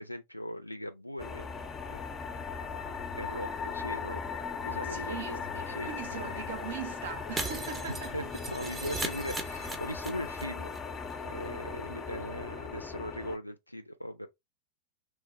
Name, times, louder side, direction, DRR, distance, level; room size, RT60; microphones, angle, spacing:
voice 1, 0.0-1.5 1.9-2.0 3.1-4.2 4.6-6.2 7.9-10.7 11.2-14.3, equal, 90° left, 0.3 m, -39 dB
sound 1, 1.2-13.4, left 5 dB, 20° left, 0.5 m, -38 dB
voice 2, 4.9-8.3, right 7 dB, 60° right, 0.6 m, -41 dB
Shatter, 7.4-10.4 10.7-10.8 11.1-11.2, right 3 dB, 15° right, 0.7 m, -38 dB
3.3 x 2.2 x 2.9 m
figure-of-eight pair, 90°, 0 cm